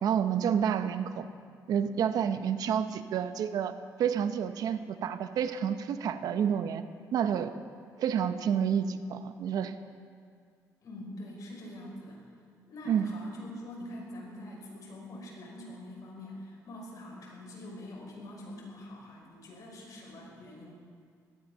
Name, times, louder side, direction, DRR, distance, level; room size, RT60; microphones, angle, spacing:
voice 1, 0.0-1.3 1.7-3.7 4.0-6.8 7.1-7.5 8.0-9.8 12.9-13.1, right 8 dB, 70° right, 10 dB, 0.9 m, -29 dB
voice 2, 10.8-12.2 12.7-20.7, left 1 dB, 60° left, -2 dB, 5.6 m, -44 dB
18.0 x 13.5 x 5.7 m, 2.1 s
cardioid pair, 95°, 7 cm